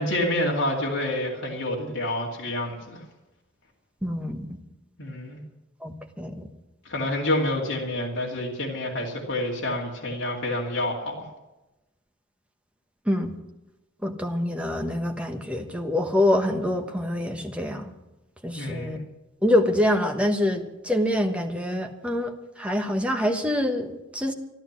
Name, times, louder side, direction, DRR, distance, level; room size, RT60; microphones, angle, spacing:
voice 1, 0.0-3.0 5.0-5.4 6.8-11.3 18.5-19.0, left 1 dB, 65° left, -3 dB, 2.4 m, -28 dB
voice 2, 4.0-4.5 5.8-6.3 13.1-13.3 14.0-17.9 18.4-19.0 19.4-22.3 22.6-24.3, left 1 dB, 5° right, 4 dB, 1.2 m, -25 dB
13.5 x 12.0 x 7.4 m, 0.98 s
head